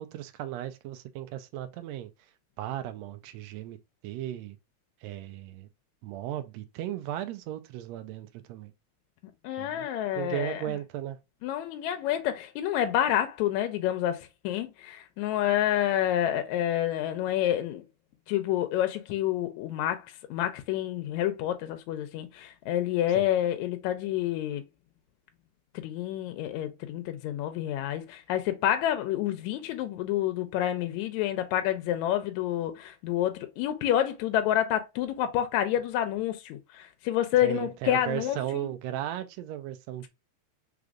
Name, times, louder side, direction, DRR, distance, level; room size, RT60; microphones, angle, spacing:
voice 1, 0.0-2.1 2.6-3.8 4.0-4.6 5.0-5.7 6.0-8.7 9.6-9.9 10.1-11.2 23.1-23.3 37.4-40.1, right 12 dB, 80° right, 1.7 m, -36 dB
voice 2, 9.4-10.6 11.4-17.9 18.3-24.6 25.8-38.7, left 11 dB, 80° left, 1.8 m, -28 dB
5.0 x 3.8 x 2.4 m
omnidirectional pair, 3.4 m